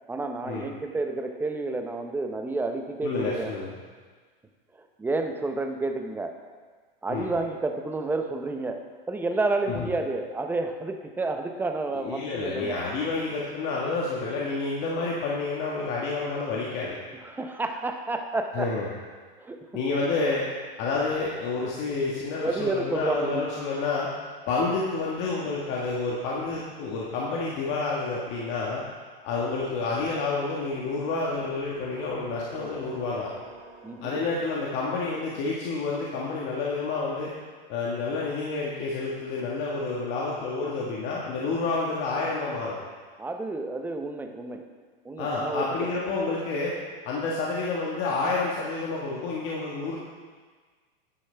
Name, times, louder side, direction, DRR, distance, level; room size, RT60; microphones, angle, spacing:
voice 1, 0.1-3.5 4.8-6.4 7.0-12.9 17.2-18.7 19.4-19.7 22.4-23.4 33.8-34.2 43.2-44.6 45.0-45.9, right 2 dB, 5° right, 5 dB, 0.6 m, -30 dB
voice 2, 3.0-3.7 7.1-7.3 9.7-9.9 11.9-17.0 18.5-18.9 19.7-20.4 20.8-24.1 24.5-28.8 29.2-33.3 34.0-37.3 37.7-42.8 45.2-46.7 47.0-50.0, left 3 dB, 40° left, -4 dB, 1.5 m, -29 dB
sound 1, 31.0-36.0, equal, 65° right, 2.4 m, -47 dB
10.0 x 9.7 x 3.4 m, 1.5 s
hypercardioid pair, 125°, 29 cm